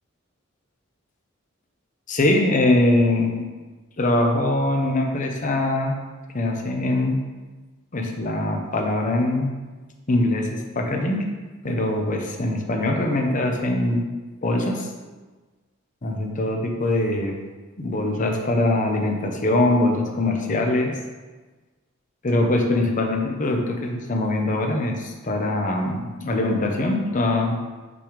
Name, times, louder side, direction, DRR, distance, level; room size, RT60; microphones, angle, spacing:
voice 1, 2.1-3.3 4.0-6.0 6.3-7.2 7.9-9.6 10.1-11.3 11.6-14.1 14.4-14.9 16.0-17.4 17.8-21.0 22.2-27.5, left 2 dB, 40° left, 3 dB, 0.7 m, -22 dB
5.9 x 3.3 x 5.0 m, 1.3 s
head